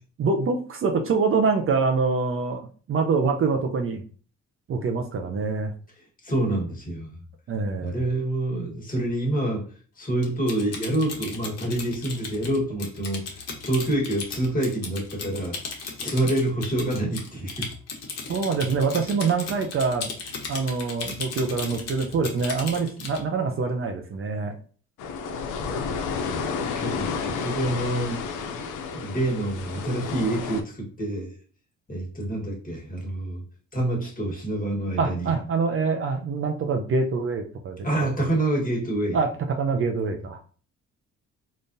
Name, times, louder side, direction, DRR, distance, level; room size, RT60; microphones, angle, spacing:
voice 1, 0.2-4.0 4.7-5.7 7.5-8.1 18.3-20.2 20.5-24.5 35.0-37.9 39.1-39.3 39.6-40.4, right 4 dB, 45° right, 4 dB, 0.5 m, -25 dB
voice 2, 6.2-7.1 7.8-9.7 10.0-13.2 13.6-15.6 16.0-17.7 26.7-28.2 28.9-31.3 31.9-33.4 33.7-35.3 37.8-39.2, right 1 dB, 30° left, -1 dB, 1.4 m, -27 dB
Typing, 10.2-23.2, left 4 dB, 55° left, 0.9 m, -36 dB
Ambience Seaside Waves Close A, 25.0-30.6, left 5 dB, 85° left, 0.5 m, -31 dB
3.7 x 2.4 x 2.6 m, 0.41 s
cardioid pair, 90°, 30 cm